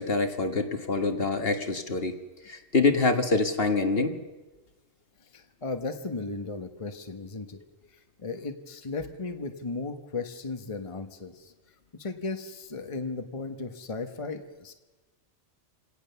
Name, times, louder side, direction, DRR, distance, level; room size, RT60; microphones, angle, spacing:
voice 1, 0.0-2.2 2.5-4.2, left 3 dB, 55° left, 6 dB, 1.8 m, -25 dB
voice 2, 5.3-7.6 8.2-11.5 12.0-14.7, left 3 dB, 30° left, 6 dB, 1.3 m, -35 dB
27.5 x 18.0 x 6.9 m, 1.2 s
omnidirectional pair, 1.2 m